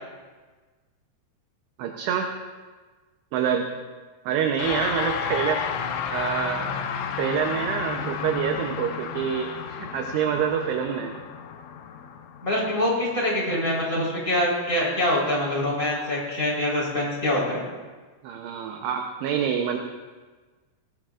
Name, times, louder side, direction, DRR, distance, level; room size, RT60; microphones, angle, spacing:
voice 1, 1.8-2.3 3.3-3.7 4.3-5.6 6.1-6.8 7.2-11.1 18.2-19.8, right 8 dB, 75° right, 2 dB, 2.8 m, -26 dB
sound 1, 4.6-14.1, left 7 dB, 85° left, 3.2 m, -32 dB
voice 2, 12.4-17.6, left 1 dB, 20° left, -4 dB, 4.3 m, -24 dB
20.0 x 18.5 x 2.5 m, 1.3 s
omnidirectional pair, 5.3 m